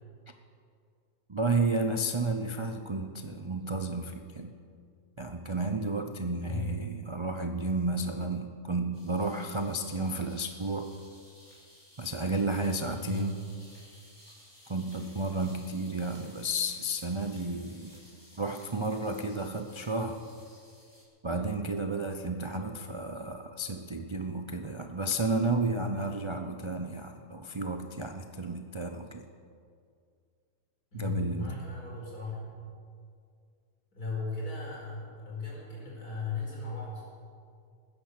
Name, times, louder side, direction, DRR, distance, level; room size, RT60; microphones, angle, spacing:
voice 1, 1.3-4.6 5.2-10.9 12.0-13.4 14.7-18.0 18.4-20.2 21.2-29.2 30.9-31.5, right 2 dB, 35° right, 5 dB, 0.5 m, -32 dB
sound 1, 8.9-21.0, equal, 15° left, 3.9 m, -57 dB
voice 2, 13.0-13.3 30.9-32.7 33.9-37.0, left 4 dB, 75° left, -4 dB, 5.5 m, -36 dB
20.5 x 10.0 x 6.7 m, 2.2 s
omnidirectional pair, 1.6 m